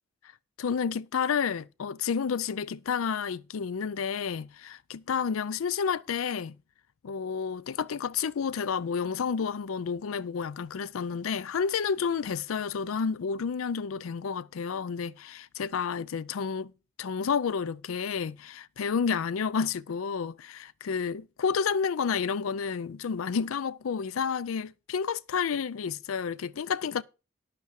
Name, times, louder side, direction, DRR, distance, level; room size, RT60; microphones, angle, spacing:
voice 1, 0.6-6.6 7.0-16.7 17.0-27.0, left 6 dB, 90° left, 0.4 m, -30 dB
10.5 x 8.3 x 4.7 m
head